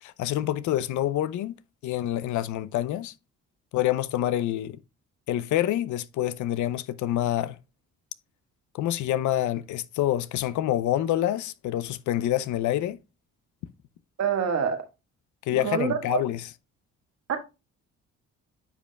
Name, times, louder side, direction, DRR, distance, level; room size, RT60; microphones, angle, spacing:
voice 1, 0.0-1.5 1.8-3.1 3.7-4.8 5.3-7.6 8.7-13.0 15.5-16.5, left 13 dB, 75° left, 0.5 m, -27 dB
voice 2, 14.2-14.8 15.6-16.2 17.3-17.4, right 7 dB, 60° right, 1.5 m, -26 dB
9.8 x 5.2 x 2.2 m
cardioid pair, 90°, 30 cm